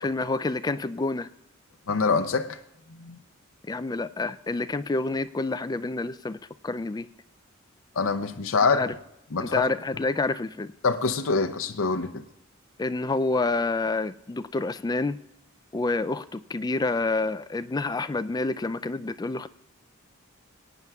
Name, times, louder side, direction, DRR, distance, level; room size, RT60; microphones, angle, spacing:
voice 1, 0.0-1.3 3.7-6.4 6.6-7.1 8.7-8.9 9.4-10.7 12.8-15.2 15.7-19.5, left 3 dB, 20° left, 0.3 m, -28 dB
voice 2, 1.9-2.6 2.9-3.2 8.0-8.8 9.3-9.7 10.8-12.2, left 4 dB, 70° left, 0.6 m, -25 dB
23.5 x 9.1 x 2.3 m
head